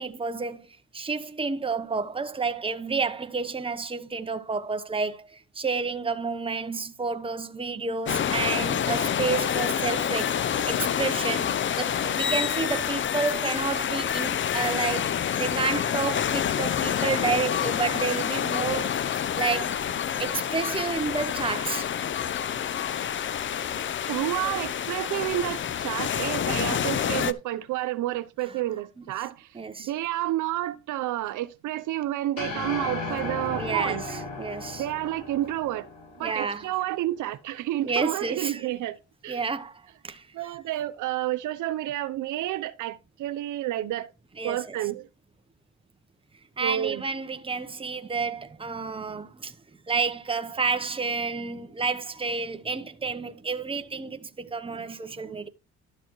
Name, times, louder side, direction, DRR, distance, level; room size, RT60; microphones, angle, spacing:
voice 1, 0.0-10.4 10.7-19.8 20.2-21.9 24.0-24.1 24.4-24.6 28.5-28.6 29.0-29.1 29.5-29.9 33.5-34.9 36.2-36.7 37.8-38.7 39.3-40.6 44.4-44.8 46.6-55.5, right 4 dB, 20° right, 0.9 m, -30 dB
sound 1, 8.1-27.3, left 9 dB, 40° left, 0.5 m, -28 dB
voice 2, 24.1-29.5 29.8-34.2 34.8-35.9 36.2-39.0 39.2-39.4 40.3-44.1 44.4-45.1 46.6-47.0, right 14 dB, 80° right, 0.7 m, -30 dB
sound 2, 32.4-36.8, left 2 dB, 85° left, 6.1 m, -35 dB
12.0 x 6.8 x 3.1 m
cardioid pair, 90°, 30 cm